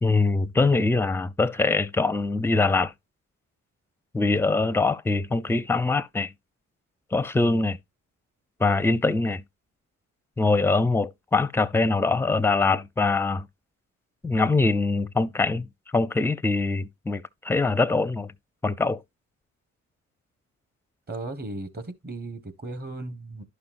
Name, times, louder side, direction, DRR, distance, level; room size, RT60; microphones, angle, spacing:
voice 1, 0.0-2.9 4.1-6.3 7.1-7.8 8.6-9.4 10.4-13.5 14.2-15.7 15.9-18.3 18.6-19.0, left 3 dB, 10° left, 0.5 m, -23 dB
voice 2, 21.1-23.4, right 2 dB, 30° right, 1.4 m, -36 dB
11.0 x 5.6 x 2.5 m
cardioid pair, 90°, 30 cm